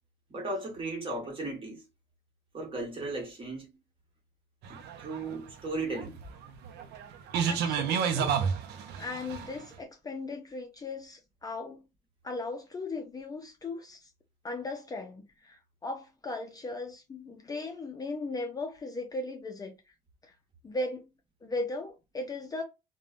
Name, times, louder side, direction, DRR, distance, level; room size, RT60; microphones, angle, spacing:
voice 1, 0.3-1.8 2.5-3.7 4.7-6.2, right 2 dB, 30° right, 1.4 m, -36 dB
sound 1, 4.6-9.7, right 7 dB, 80° right, 0.5 m, -31 dB
voice 2, 7.4-8.3 9.0-11.8 12.2-14.1 14.4-19.8 20.2-20.3 20.6-21.0 21.4-22.6, left 2 dB, 20° left, 0.5 m, -37 dB
3.1 x 2.2 x 2.5 m
cardioid pair, 110°, 17 cm